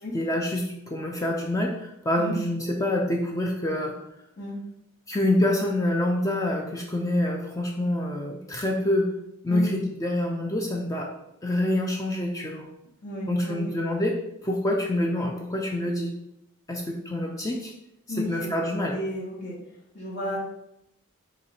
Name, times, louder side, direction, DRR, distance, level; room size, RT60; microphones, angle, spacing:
voice 1, 0.1-4.0 5.1-9.1 9.4-11.1 11.4-12.7 13.3-14.2 14.4-16.1 16.7-17.7 18.1-19.0, left 1 dB, 15° left, 0 dB, 0.3 m, -26 dB
voice 2, 13.0-13.7 18.1-18.5 18.9-19.5 19.9-20.4, left 1 dB, 50° left, -7 dB, 1.2 m, -33 dB
3.0 x 2.5 x 4.1 m, 0.81 s
head